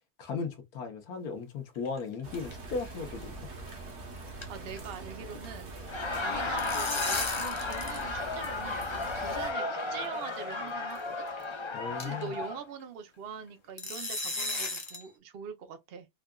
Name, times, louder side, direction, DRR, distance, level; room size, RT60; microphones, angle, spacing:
voice 1, 0.2-3.4 11.7-12.4, left 5 dB, 75° left, 1.4 m, -36 dB
sound 1, 1.7-2.5 2.8-2.9 3.2-3.3 3.7-3.9 4.2-5.0 5.2-5.5 6.3-8.1 8.3-8.4 9.3-9.4 10.2-10.4 10.9-11.0 11.4-11.5 12.0-12.3 13.8-15.1, left 2 dB, 25° left, 0.7 m, -36 dB
sound 2, 2.2-9.5, right 2 dB, 50° right, 1.2 m, -43 dB
voice 2, 4.5-5.8 6.2-11.3 12.0-16.1, right 7 dB, 65° right, 0.5 m, -43 dB
Laughter, 5.8-12.6, left 3 dB, 45° left, 0.3 m, -34 dB
4.6 x 2.4 x 2.2 m
omnidirectional pair, 1.6 m